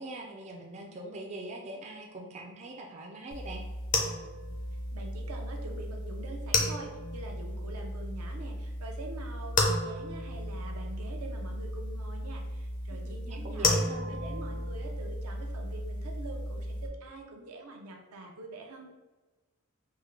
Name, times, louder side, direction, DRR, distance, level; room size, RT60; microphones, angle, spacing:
voice 1, 0.0-3.7 13.0-14.2, right 2 dB, 30° right, 0 dB, 0.3 m, -42 dB
sound 1, 3.3-16.9, left 2 dB, 35° left, 0.4 m, -33 dB
voice 2, 4.7-13.8 14.1-18.9, right 2 dB, 85° right, 1 dB, 0.6 m, -45 dB
3.5 x 2.1 x 3.2 m, 1.2 s
head